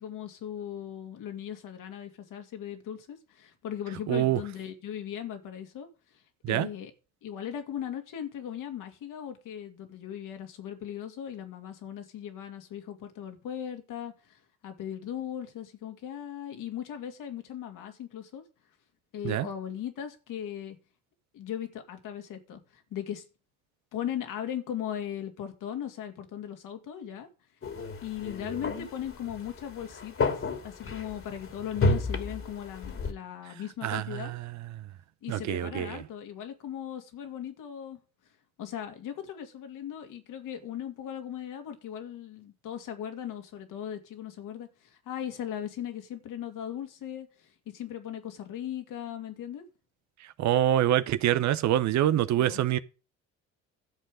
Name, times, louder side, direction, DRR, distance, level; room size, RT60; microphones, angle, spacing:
voice 1, 0.0-6.9 7.2-18.4 19.1-20.8 21.3-23.2 23.9-27.3 28.0-30.4 30.6-34.3 35.2-38.0 38.6-49.6 52.4-52.6, left 10 dB, 55° left, 2.5 m, -38 dB
voice 2, 4.1-4.4 6.4-6.7 19.2-19.5 33.8-34.5 35.3-36.0 50.4-52.8, right 12 dB, 50° right, 0.8 m, -25 dB
sound 1, 27.6-33.1, left 3 dB, 35° left, 2.5 m, -32 dB
13.0 x 7.5 x 5.1 m
figure-of-eight pair, 50°, 37 cm